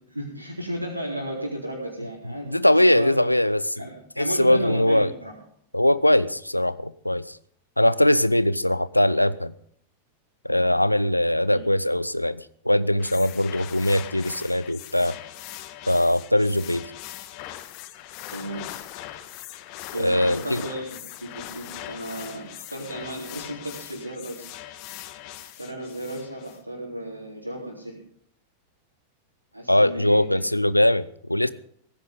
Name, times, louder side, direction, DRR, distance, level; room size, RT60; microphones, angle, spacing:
voice 1, 0.1-2.5 2.9-3.2 3.8-5.4 11.5-11.7 16.6-16.8 18.3-18.7 19.9-24.5 25.4-28.0 29.5-30.5, right 1 dB, 85° right, -5 dB, 3.8 m, -34 dB
voice 2, 2.5-3.6 4.2-5.1 5.7-7.4 7.8-9.5 10.4-15.1 15.9-16.8 20.0-20.6 29.7-31.5, left 1 dB, 85° left, 16 dB, 0.6 m, -21 dB
sound 1, 13.0-26.6, left 14 dB, 45° left, 1.2 m, -40 dB
18.0 x 15.0 x 3.8 m, 0.63 s
figure-of-eight pair, 90°, 0 cm